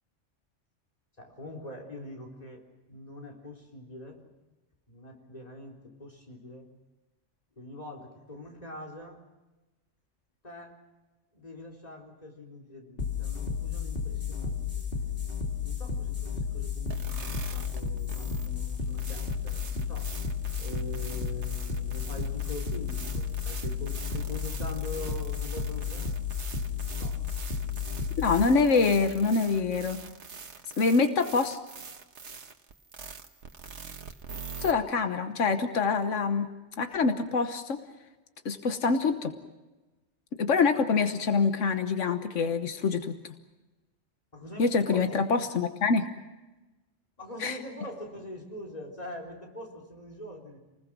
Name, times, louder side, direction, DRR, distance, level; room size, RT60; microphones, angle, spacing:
voice 1, 1.2-4.2 4.9-6.7 7.6-9.2 10.4-10.8 11.3-14.9 15.6-20.3 20.6-26.2 27.0-27.2 44.3-45.2 47.2-50.6, left 1 dB, 30° left, 1 dB, 4.0 m, -43 dB
sound 1, 13.0-30.0, left 6 dB, 50° left, 3.1 m, -33 dB
sound 2, 16.9-34.7, right 5 dB, 75° right, 1.6 m, -44 dB
voice 2, 28.2-30.0 30.8-31.6 34.6-36.5 36.8-37.8 38.4-39.3 40.3-43.3 44.6-46.1 47.4-47.6, left 4 dB, 90° left, 8 dB, 1.5 m, -25 dB
28.5 x 20.0 x 6.2 m, 1.1 s
omnidirectional pair, 1.2 m